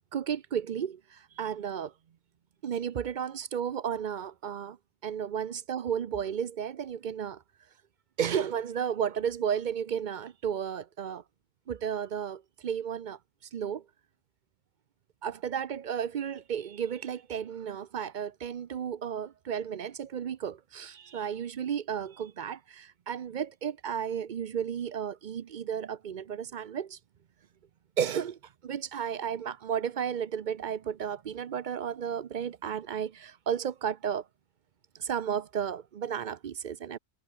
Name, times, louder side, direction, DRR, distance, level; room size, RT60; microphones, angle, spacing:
voice 1, 0.1-1.9 2.6-4.8 5.0-7.4 8.2-11.2 11.7-13.2 13.5-13.8 15.2-27.0 28.0-34.3 35.0-37.0, right 8 dB, 50° right, 0.6 m, -33 dB
omnidirectional pair, 1.3 m